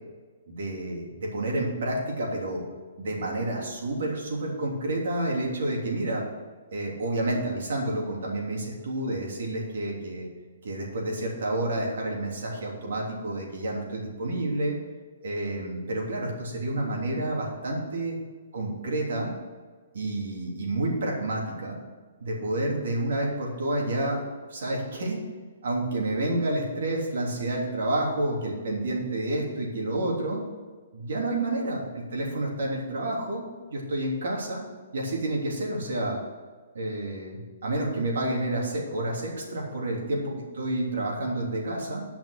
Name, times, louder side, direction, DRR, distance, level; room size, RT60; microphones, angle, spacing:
voice 1, 0.5-2.6 3.0-6.2 6.7-10.3 10.6-14.8 15.2-18.1 18.5-19.3 19.9-21.8 22.2-24.2 24.5-25.2 25.6-30.4 30.9-33.4 33.7-34.6 34.9-36.2 36.7-42.0, right 1 dB, 65° right, -2 dB, 3.2 m, -29 dB
11.0 x 5.9 x 6.5 m, 1.5 s
hypercardioid pair, 175°, 0 cm